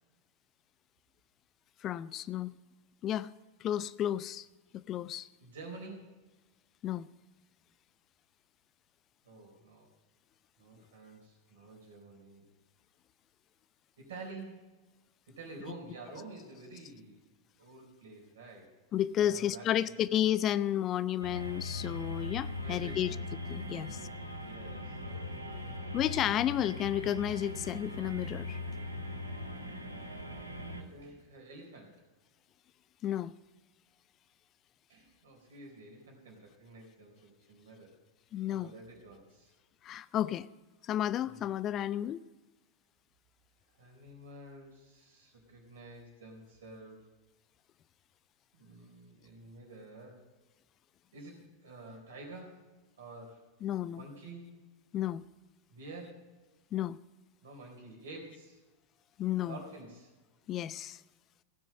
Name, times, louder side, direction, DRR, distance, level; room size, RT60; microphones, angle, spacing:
voice 1, 1.8-2.5 3.0-3.3 3.6-4.5 4.7-5.3 6.8-7.1 18.9-23.2 23.5-24.0 25.9-28.6 33.0-33.3 38.3-38.7 39.8-40.5 40.8-42.2 53.6-54.0 54.9-55.3 56.7-57.0 59.2-59.6 60.5-61.0, left 11 dB, 30° left, 0.3 m, -32 dB
voice 2, 5.4-6.1 9.2-9.9 10.6-12.4 14.0-14.7 15.3-17.3 17.6-18.7 19.2-19.9 22.6-23.2 23.8-25.8 27.6-27.7 30.8-32.0 34.9-37.9 38.5-39.5 41.2-41.4 43.7-47.1 48.5-50.2 51.1-52.7 53.0-53.5 54.0-54.5 55.7-56.3 57.4-58.6 59.4-60.1, right 2 dB, 60° right, 3.9 m, -49 dB
sound 1, 21.2-30.8, left 2 dB, 85° right, 1.1 m, -40 dB
16.0 x 6.2 x 7.5 m
figure-of-eight pair, 90°, 0 cm